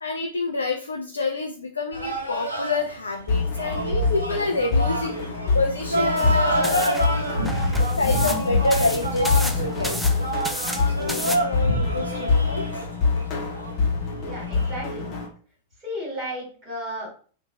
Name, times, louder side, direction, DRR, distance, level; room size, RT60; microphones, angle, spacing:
voice 1, 0.0-5.2 5.5-7.0 8.0-10.3 10.9-12.7, left 3 dB, 75° left, 2 dB, 0.4 m, -27 dB
sound 1, 1.9-14.8, right 1 dB, 85° right, 0.6 m, -27 dB
sound 2, 3.3-15.3, left 4 dB, 35° left, 1.0 m, -26 dB
sound 3, 6.2-11.4, equal, ahead, 0.4 m, -33 dB
voice 2, 14.2-15.1 15.8-17.1, equal, 35° right, -2 dB, 1.7 m, -33 dB
3.0 x 2.5 x 3.1 m, 0.42 s
figure-of-eight pair, 90°, 0 cm